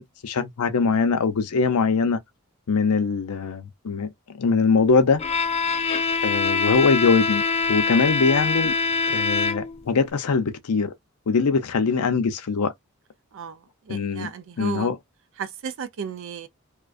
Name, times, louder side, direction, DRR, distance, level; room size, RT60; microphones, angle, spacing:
voice 1, 0.0-2.2 2.7-4.1 4.4-5.2 6.2-7.4 7.7-8.7 9.1-10.9 11.3-12.7 13.9-14.3 14.6-15.0, left 4 dB, 90° left, 0.5 m, -22 dB
Bowed string instrument, 5.2-9.9, left 4 dB, 30° left, 0.4 m, -24 dB
voice 2, 13.3-14.9 15.4-16.5, right 7 dB, 60° right, 0.4 m, -34 dB
2.4 x 2.2 x 2.4 m
head